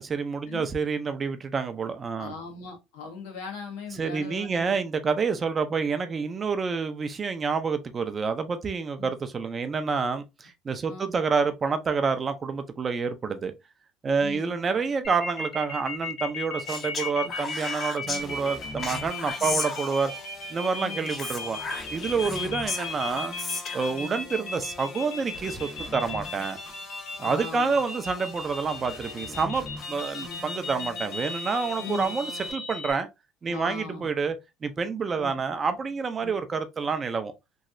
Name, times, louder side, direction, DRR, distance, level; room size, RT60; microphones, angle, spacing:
voice 1, 0.0-2.3 4.0-13.5 14.0-20.1 20.5-21.6 21.9-23.3 23.7-26.6 27.2-33.1 33.4-34.4 34.6-37.3, right 5 dB, 25° right, 0.4 m, -28 dB
voice 2, 2.2-4.8 9.0-9.1 9.7-9.8 10.9-11.2 14.2-14.6 17.2-17.3 18.0-18.4 19.4-19.6 20.8-21.1 22.2-22.6 24.0-24.2 27.2-27.7 30.2-30.4 31.8-32.1 33.5-34.1 35.1-35.4 36.2-36.4, left 4 dB, 85° left, 1.3 m, -40 dB
sound 1, 15.0-32.9, left 3 dB, 65° left, 1.6 m, -36 dB
Speech, 16.7-18.2 18.8-20.3 21.1-23.9, left 3 dB, 25° left, 0.6 m, -35 dB
sound 2, 18.2-32.5, left 3 dB, 50° left, 1.2 m, -43 dB
3.1 x 2.7 x 2.5 m
cardioid pair, 145°, 0 cm